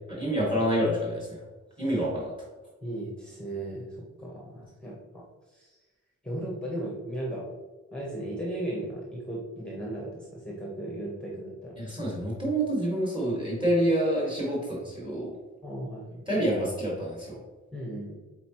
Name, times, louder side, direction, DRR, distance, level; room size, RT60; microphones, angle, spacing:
voice 1, 0.1-1.4 1.8-2.3 11.8-15.3 16.3-17.4, right 1 dB, 15° right, -5 dB, 1.9 m, -27 dB
voice 2, 2.8-5.8 6.2-7.4 7.9-11.7 15.6-16.2 17.7-18.1, right 1 dB, 5° left, -3 dB, 1.1 m, -36 dB
8.1 x 4.1 x 3.0 m, 1.2 s
wide cardioid pair, 155°, 29 cm